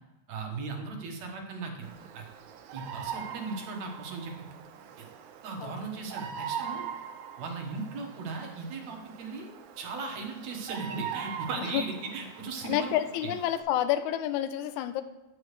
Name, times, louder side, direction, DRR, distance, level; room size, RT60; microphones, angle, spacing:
voice 1, 0.3-1.9 2.1-2.2 2.7-4.3 5.0-5.1 5.4-6.9 7.4-9.5 9.8-12.9 13.2-13.3, right 4 dB, 70° right, 2 dB, 2.4 m, -37 dB
Bird vocalization bird call bird song, 1.8-13.6, right 8 dB, 85° right, 2.1 m, -42 dB
voice 2, 12.6-15.0, left 12 dB, 80° left, 11 dB, 1.9 m, -29 dB
9.5 x 8.0 x 3.2 m, 1.1 s
omnidirectional pair, 3.5 m